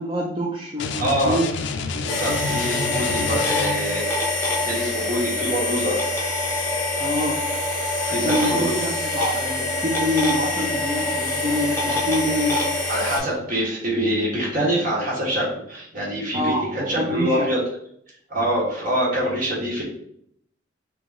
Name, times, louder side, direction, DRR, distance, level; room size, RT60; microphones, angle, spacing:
voice 1, 0.0-1.5 7.0-7.4 8.2-12.7 16.3-17.5, equal, 30° right, -3 dB, 0.5 m, -26 dB
sound 1, 0.8-4.0, left 4 dB, 65° left, 0.4 m, -28 dB
voice 2, 1.0-1.4 2.0-4.0 4.6-6.0 8.0-8.7 12.9-17.6 18.3-19.8, equal, 45° right, -4 dB, 1.5 m, -25 dB
sound 2, 2.1-13.2, left 2 dB, 15° left, 1.0 m, -25 dB
3.5 x 2.9 x 3.8 m, 0.69 s
head